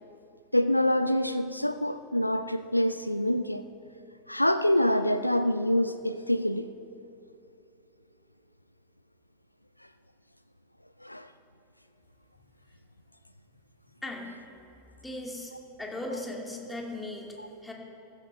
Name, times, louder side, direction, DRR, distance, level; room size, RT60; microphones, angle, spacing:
voice 1, 0.5-3.7 4.3-6.7 11.0-11.3 17.4-17.5, left 1 dB, 90° left, 11 dB, 0.4 m, -26 dB
voice 2, 14.0-14.4 15.0-15.5 15.8-17.3 17.6-17.7, left 1 dB, 10° left, 0 dB, 2.3 m, -37 dB
14.5 x 12.0 x 5.6 m, 2.9 s
figure-of-eight pair, 90°, 0 cm